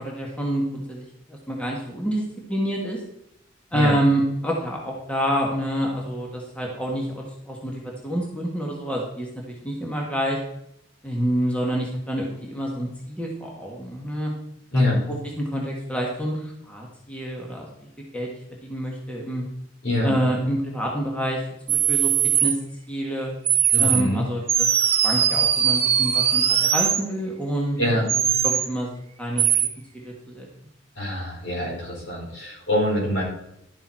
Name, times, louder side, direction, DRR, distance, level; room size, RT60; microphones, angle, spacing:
voice 1, 0.0-2.2 2.5-3.0 3.7-10.4 11.0-14.3 14.7-17.9 18.1-18.3 18.6-19.4 20.0-21.4 21.7-22.1 22.4-22.5 22.9-23.3 23.8-27.8 28.1-29.5 29.9-30.5, equal, 5° left, -2 dB, 1.5 m, -27 dB
sound 1, 21.7-22.5 23.5-24.0 24.5-27.0 28.1-28.7 29.4-29.7, right 9 dB, 30° right, 0.7 m, -20 dB
voice 2, 23.7-24.2 27.8-28.1 31.0-33.2, left 1 dB, 70° left, -3 dB, 4.7 m, -24 dB
11.5 x 6.9 x 4.4 m, 0.78 s
head